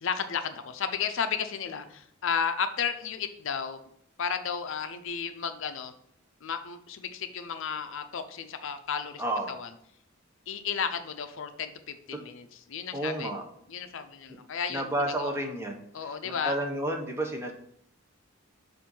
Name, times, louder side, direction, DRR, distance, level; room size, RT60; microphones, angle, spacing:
voice 1, 0.0-3.8 4.2-5.9 6.4-9.2 9.5-9.7 10.5-13.3 13.7-14.9 15.2-15.3 15.9-16.5, left 6 dB, 65° left, 8 dB, 0.5 m, -33 dB
voice 2, 9.2-9.6 12.9-13.4 14.7-17.5, right 1 dB, 10° right, 2 dB, 0.7 m, -31 dB
7.4 x 2.6 x 5.3 m, 0.70 s
head